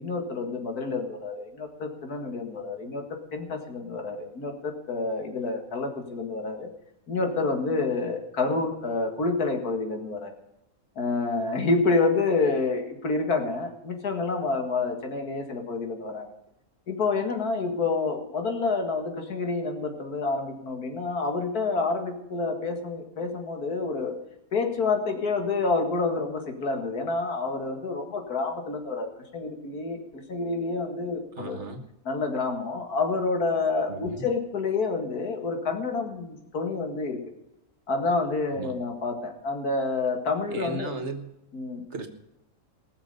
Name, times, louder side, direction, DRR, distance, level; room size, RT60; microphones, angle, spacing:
voice 1, 0.0-6.7 7.1-10.3 11.0-16.3 16.9-24.2 24.5-31.6 32.1-37.2 37.9-40.9 41.5-41.8, left 3 dB, 85° left, 4 dB, 2.4 m, -28 dB
voice 2, 31.3-31.9 33.9-34.3 38.5-38.8 40.5-41.3 41.9-42.1, right 3 dB, 50° right, 6 dB, 1.7 m, -36 dB
19.0 x 7.2 x 6.8 m, 0.85 s
omnidirectional pair, 1.6 m